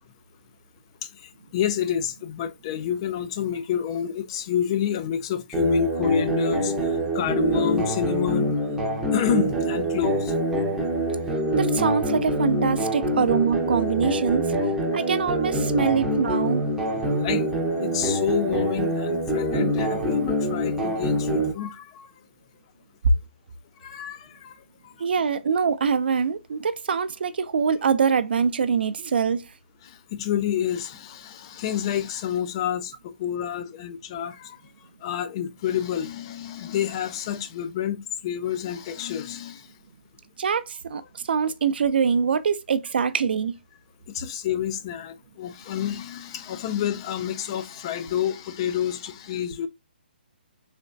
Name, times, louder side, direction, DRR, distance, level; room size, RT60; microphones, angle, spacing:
voice 1, 1.5-6.7 7.1-8.5 9.1-10.3 14.9-15.0 15.8-15.9 16.9-17.5 17.8-22.1 23.8-24.6 29.8-34.6 35.0-39.6 44.1-49.7, left 9 dB, 30° left, 0.3 m, -28 dB
sound 1, 5.5-21.5, right 1 dB, 5° right, 0.6 m, -25 dB
voice 2, 11.5-14.5 14.9-16.7 23.0-23.1 25.0-29.4 40.4-43.5, right 6 dB, 70° right, 0.4 m, -24 dB
3.3 x 2.9 x 2.5 m
hypercardioid pair, 155°, 6 cm